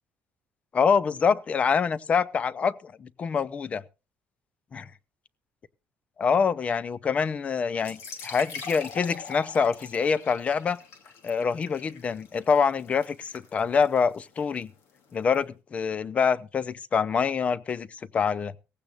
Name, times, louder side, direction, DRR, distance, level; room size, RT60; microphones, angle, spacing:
voice 1, 0.7-3.8 4.7-4.8 6.2-10.8 11.2-14.7 15.1-18.5, left 6 dB, 30° left, 0.6 m, -25 dB
sound 1, 7.8-15.4, left 5 dB, 75° left, 2.6 m, -44 dB
17.5 x 15.5 x 2.5 m
cardioid pair, 150°, 4 cm